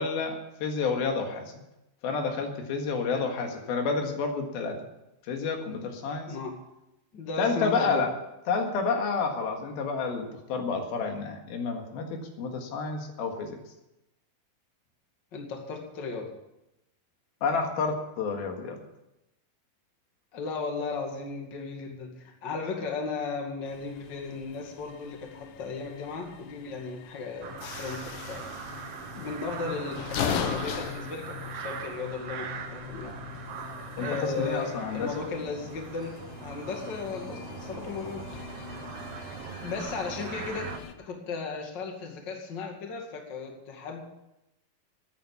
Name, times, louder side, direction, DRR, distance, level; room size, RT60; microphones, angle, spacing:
voice 1, 0.0-1.5 2.0-4.8 5.3-6.4 7.4-8.1 8.5-13.6 17.4-18.8 34.0-35.1, left 4 dB, 90° left, 3 dB, 3.6 m, -29 dB
voice 2, 6.3-6.6 7.1-8.0 15.3-16.3 20.3-28.8 29.1-33.2 34.0-38.4 39.4-40.7 41.0-44.0, left 4 dB, 35° left, 2 dB, 2.3 m, -36 dB
sound 1, 23.6-40.9, left 9 dB, 70° left, 2.4 m, -40 dB
sound 2, 27.4-40.8, right 7 dB, 75° right, 1.4 m, -41 dB
14.5 x 9.4 x 7.0 m, 0.90 s
omnidirectional pair, 4.2 m